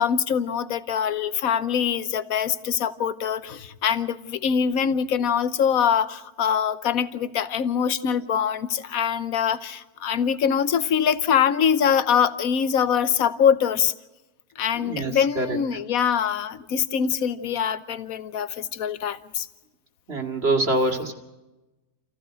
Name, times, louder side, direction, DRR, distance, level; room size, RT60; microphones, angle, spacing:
voice 1, 0.0-13.9 14.6-19.5, left 8 dB, 70° left, 14 dB, 1.3 m, -23 dB
voice 2, 14.7-15.6 20.1-21.1, right 2 dB, 45° right, 4 dB, 2.5 m, -25 dB
28.0 x 15.5 x 6.3 m, 1.1 s
omnidirectional pair, 1.6 m